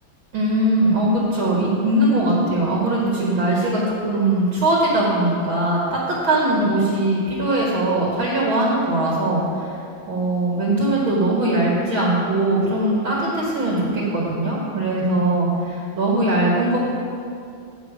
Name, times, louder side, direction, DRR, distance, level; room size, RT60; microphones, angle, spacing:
voice 1, 0.3-9.7 10.1-16.8, right 1 dB, 75° right, -5 dB, 2.5 m, -20 dB
8.7 x 7.6 x 5.0 m, 2.4 s
omnidirectional pair, 2.2 m